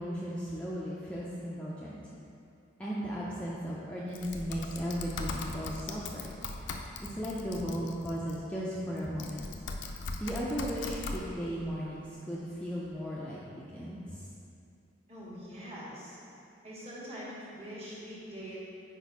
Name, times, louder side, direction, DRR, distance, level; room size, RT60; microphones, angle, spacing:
voice 1, 0.0-2.0 2.8-6.2 7.0-9.5 10.2-14.3, equal, 5° left, -7 dB, 0.4 m, -36 dB
Typing, 4.1-8.3 9.0-11.2, left 3 dB, 70° left, 0.4 m, -39 dB
voice 2, 15.1-16.2 16.6-18.6, equal, 30° right, -7 dB, 1.3 m, -43 dB
4.9 x 4.2 x 4.6 m, 2.6 s
head